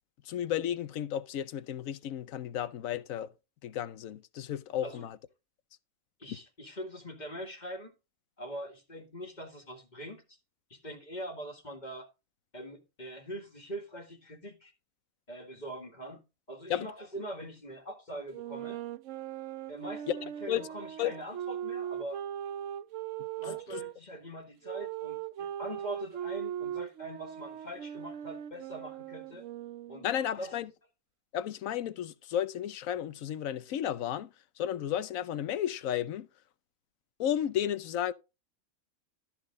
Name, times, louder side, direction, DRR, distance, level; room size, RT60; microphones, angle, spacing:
voice 1, 0.2-3.3 3.6-5.2 6.3-6.4 16.7-16.9 20.1-20.2 20.5-20.6 21.0-21.1 23.5-23.8 30.0-30.7 31.3-36.3 37.2-38.1, left 10 dB, 80° left, 1.1 m, -33 dB
voice 2, 6.2-7.9 8.4-10.4 10.7-12.1 12.5-14.7 15.3-16.2 16.5-18.8 19.7-22.2 23.4-29.4 29.9-30.1 30.4-30.6, right 1 dB, 35° left, 1.9 m, -43 dB
sound 1, 18.3-23.9 24.6-30.2, right 10 dB, 70° right, 1.0 m, -39 dB
13.0 x 6.1 x 3.7 m
omnidirectional pair, 1.4 m